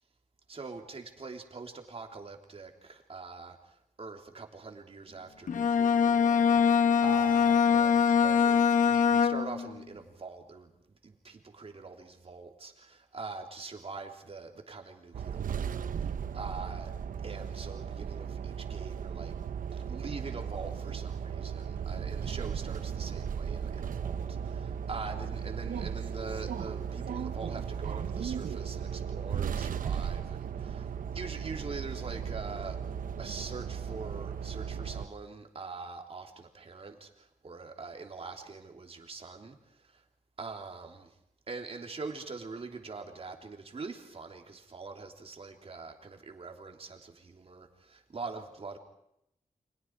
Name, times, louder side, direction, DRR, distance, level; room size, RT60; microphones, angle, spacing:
voice 1, 0.5-6.7 7.0-16.9 17.2-19.3 19.9-30.9 31.1-32.8 33.2-40.0 40.4-41.1 41.5-48.8, right 4 dB, 45° right, 3 dB, 3.4 m, -43 dB
Bowed string instrument, 5.5-9.7, left 7 dB, 70° left, 1.1 m, -23 dB
sound 1, 15.1-35.1, right 7 dB, 90° right, 0.8 m, -36 dB
30.0 x 25.5 x 4.8 m, 0.79 s
wide cardioid pair, 100°, 14 cm